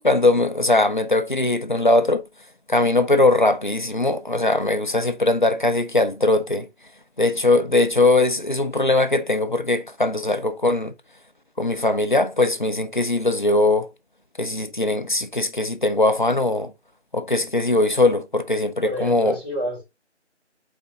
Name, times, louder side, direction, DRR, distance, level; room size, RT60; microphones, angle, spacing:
voice 1, 0.0-2.2 2.7-6.7 7.2-10.9 11.6-13.9 14.4-16.7 17.1-19.3, left 2 dB, 45° left, 0.6 m, -20 dB
voice 2, 18.8-19.8, equal, 30° right, 4.2 m, -29 dB
7.6 x 4.3 x 3.8 m
figure-of-eight pair, 175°, 36 cm